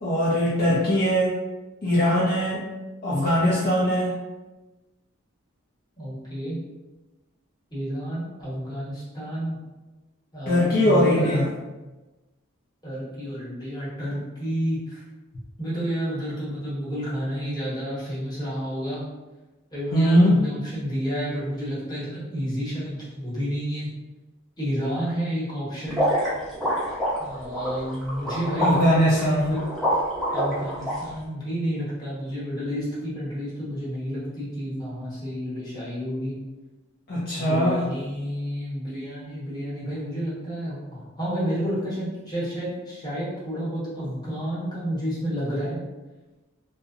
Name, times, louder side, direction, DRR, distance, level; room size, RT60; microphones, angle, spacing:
voice 1, 0.0-1.3 1.8-2.6 3.0-4.2 10.5-11.5 19.9-20.4 28.6-29.5 37.1-37.8, equal, 45° left, -8 dB, 0.5 m, -21 dB
voice 2, 6.0-6.6 7.7-9.6 10.3-11.4 12.8-15.0 15.6-19.0 19.7-23.9 24.6-26.0 27.2-29.6 30.3-36.3 37.4-45.8, equal, 20° left, -9 dB, 1.0 m, -30 dB
sound 1, 25.9-30.9, equal, ahead, 0.6 m, -26 dB
2.7 x 2.1 x 2.4 m, 1.1 s
head